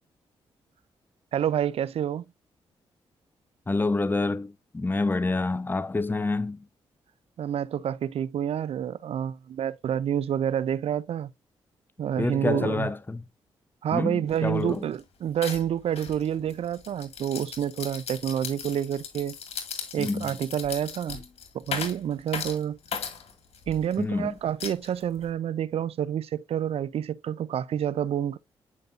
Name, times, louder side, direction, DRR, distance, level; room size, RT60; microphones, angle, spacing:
voice 1, 1.3-2.2 7.4-11.3 12.0-12.9 13.8-19.4 19.9-21.2 21.5-22.8 23.7-28.4, right 9 dB, 70° right, 0.5 m, -28 dB
voice 2, 3.7-6.6 12.2-13.3 13.9-14.8 20.0-20.3 24.0-24.3, left 3 dB, 20° left, 0.7 m, -27 dB
sound 1, 14.3-14.4 14.7-15.0 15.4-24.0 24.6-25.3, left 6 dB, 70° left, 1.9 m, -37 dB
9.4 x 5.3 x 2.5 m
supercardioid pair, 50°, 11 cm